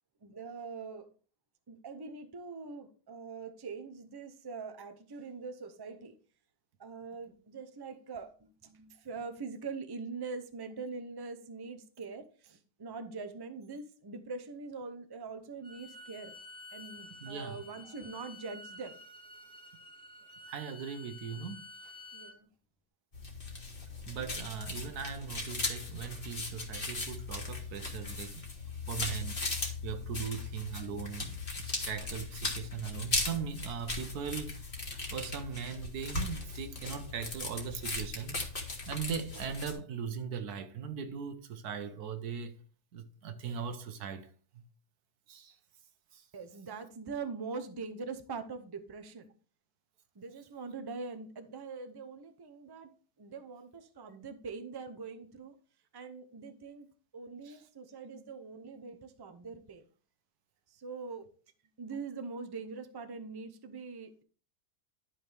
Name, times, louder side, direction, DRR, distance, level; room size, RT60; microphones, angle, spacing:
voice 1, 0.2-1.1 1.7-6.1 6.8-16.4 16.7-19.0 22.1-22.5 30.2-30.5 46.3-49.3 50.1-52.9 53.2-55.6 55.9-56.9 57.1-59.9 60.7-61.3 61.8-64.2, right 4 dB, 25° right, 0.6 m, -43 dB
Bowed string instrument, 15.6-22.4, left 2 dB, 5° left, 0.8 m, -50 dB
voice 2, 17.2-17.6 20.5-21.6 24.1-28.4 28.9-29.4 29.8-31.3 31.6-34.7 35.1-38.4 38.9-42.6 42.9-44.3 45.3-45.5 46.1-46.2, right 7 dB, 90° right, 1.5 m, -39 dB
sound 1, 23.1-39.7, left 3 dB, 35° left, 1.9 m, -38 dB
11.0 x 5.7 x 3.4 m
omnidirectional pair, 1.6 m